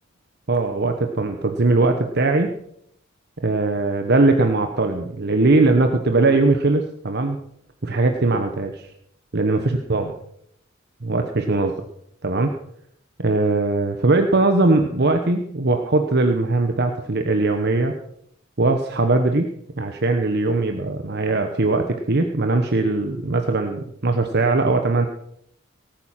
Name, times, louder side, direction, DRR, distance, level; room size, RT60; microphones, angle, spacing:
voice 1, 0.5-2.5 3.4-7.4 7.8-8.9 9.3-10.1 11.0-11.8 12.2-12.5 13.2-17.9 18.6-19.5 19.8-25.1, right 2 dB, 50° right, 5 dB, 1.1 m, -20 dB
18.5 x 9.0 x 5.8 m, 0.71 s
head